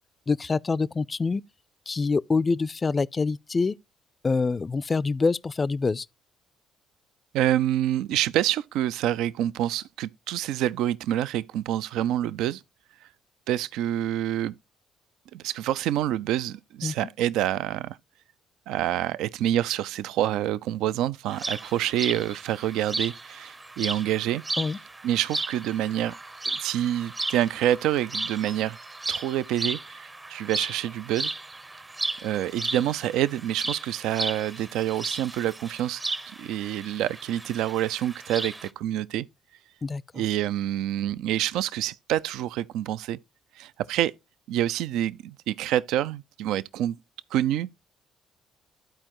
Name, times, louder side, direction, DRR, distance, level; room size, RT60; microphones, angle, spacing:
voice 1, 0.3-1.4 1.9-3.7 4.2-6.1 16.8-16.9 24.6-24.8 39.8-40.0, left 4 dB, 35° left, 0.4 m, -25 dB
voice 2, 7.3-12.6 13.5-14.5 15.3-18.0 18.7-24.4 25.0-26.1 26.5-28.8 29.1-31.3 32.2-36.0 36.3-39.3 40.1-43.2 43.6-44.1 44.5-47.0 47.3-47.8, right 12 dB, 80° right, 0.3 m, -27 dB
sound 1, 21.3-38.7, right 2 dB, 25° right, 0.7 m, -35 dB
13.0 x 4.4 x 3.0 m
supercardioid pair, 60°, 0 cm